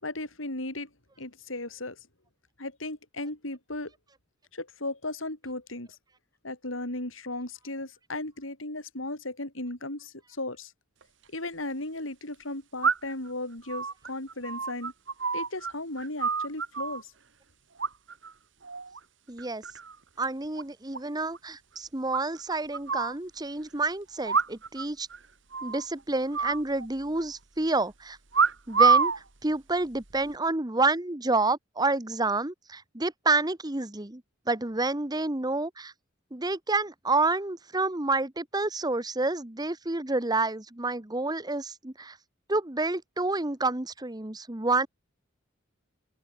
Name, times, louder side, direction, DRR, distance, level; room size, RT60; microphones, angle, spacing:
voice 1, 0.0-0.9 1.2-2.0 2.6-3.9 4.5-5.9 6.4-10.7 11.3-14.9 15.3-17.1, left 2 dB, 85° left, 6.9 m, -36 dB
sound 1, 11.0-11.1 12.8-13.3 13.7-15.7 16.0-17.0 17.8-18.3 18.6-19.0 19.4-20.0 20.2-20.3 20.6-20.7 20.9-21.0 21.3-21.4 22.1-23.2 24.2-24.9 25.1-25.2 25.5-25.9 26.3-27.3 28.3-29.2 29.9-30.3, right 5 dB, 65° right, 2.0 m, -27 dB
voice 2, 19.3-19.6 20.2-25.1 25.6-28.2 28.7-29.1 29.4-34.2 34.5-35.9 36.3-42.2 42.5-44.9, right 3 dB, 20° right, 1.2 m, -29 dB
open air
head